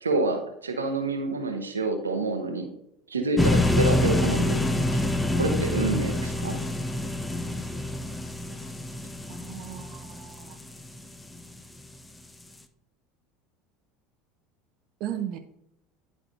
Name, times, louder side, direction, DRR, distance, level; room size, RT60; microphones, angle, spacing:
voice 1, 0.0-2.7 3.1-5.0 5.4-6.6, right 2 dB, 90° right, 5 dB, 0.9 m, -28 dB
sound 1, 3.4-11.4, left 1 dB, 10° left, 0.6 m, -26 dB
voice 2, 9.3-10.6 15.0-15.4, right 10 dB, 55° right, 6 dB, 0.6 m, -36 dB
11.0 x 4.8 x 2.7 m, 0.76 s
hypercardioid pair, 75°, 0 cm